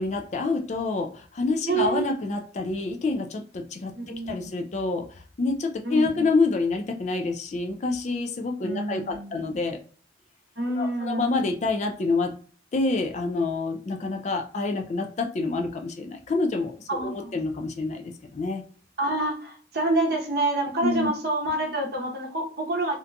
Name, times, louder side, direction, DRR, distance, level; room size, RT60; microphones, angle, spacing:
voice 1, 0.0-5.1 5.4-9.8 10.7-12.4 12.7-18.6 20.8-21.1, left 3 dB, 35° left, 0.3 m, -27 dB
voice 2, 1.7-2.1 3.9-4.5 5.8-6.3 8.6-9.5 10.6-11.3 16.9-17.4 19.0-23.0, right 2 dB, 55° right, 0.7 m, -27 dB
2.6 x 2.6 x 2.2 m
head